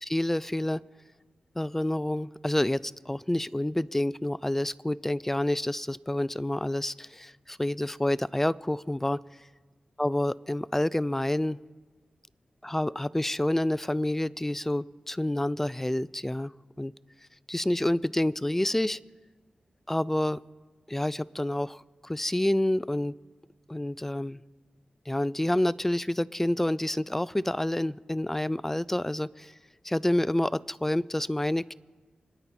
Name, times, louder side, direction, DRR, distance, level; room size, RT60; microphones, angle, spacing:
voice 1, 0.0-0.8 1.6-9.2 10.0-11.6 12.6-16.5 16.8-16.9 17.5-19.0 19.9-20.4 20.9-23.2 23.7-24.4 25.1-29.5 29.8-31.7, left 1 dB, 10° left, 19 dB, 0.3 m, -28 dB
25.5 x 10.5 x 4.2 m, 1.3 s
wide cardioid pair, 70°, 3 cm